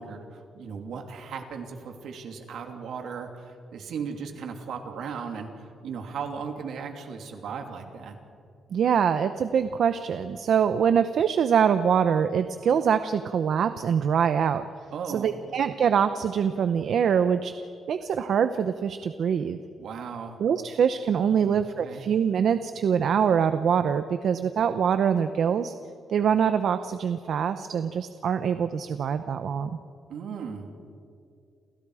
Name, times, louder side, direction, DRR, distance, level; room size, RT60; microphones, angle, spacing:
voice 1, 0.0-8.2 14.9-15.3 19.8-20.4 21.4-22.0 30.1-30.7, right 6 dB, 70° right, 4 dB, 3.0 m, -37 dB
voice 2, 8.7-14.6 15.1-17.5 17.9-19.6 20.4-25.7 26.1-29.7, right 7 dB, 55° right, 10 dB, 0.8 m, -24 dB
29.5 x 28.5 x 4.9 m, 2.4 s
wide cardioid pair, 175°, 0 cm